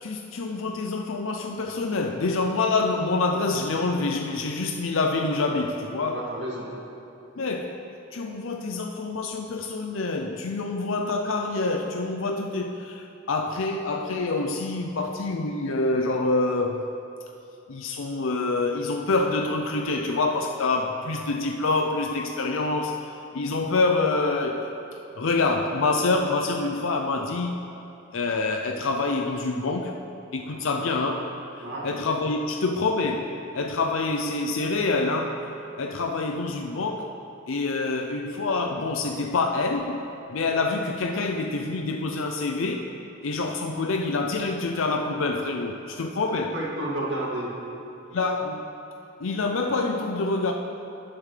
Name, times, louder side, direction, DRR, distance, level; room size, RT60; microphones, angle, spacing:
voice 1, 0.0-6.3 7.4-7.8 8.1-16.8 17.7-24.7 25.2-27.7 28.1-30.0 30.3-31.3 31.8-35.5 35.8-37.2 37.5-42.9 43.2-46.5 48.1-48.7 49.2-50.5, left 3 dB, 85° left, 3 dB, 0.6 m, -26 dB
voice 2, 6.1-6.7 30.5-30.8 31.6-31.9 46.2-47.5, right 1 dB, 65° right, -5 dB, 2.3 m, -32 dB
19.0 x 7.3 x 3.3 m, 2.8 s
head